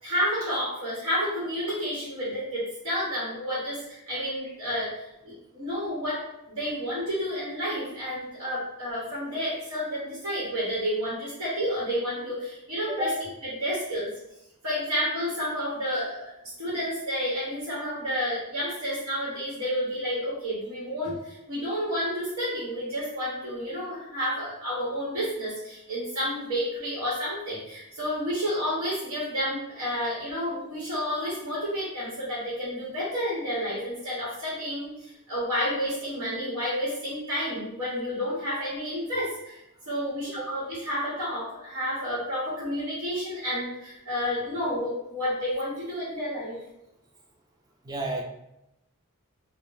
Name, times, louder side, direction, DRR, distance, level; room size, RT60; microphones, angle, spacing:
voice 1, 0.0-14.1 14.6-16.3 16.6-39.6 39.9-46.6, equal, 70° right, -8 dB, 1.0 m, -30 dB
voice 2, 47.8-48.2, right 2 dB, 20° right, 1 dB, 0.4 m, -32 dB
3.5 x 2.0 x 2.5 m, 0.87 s
head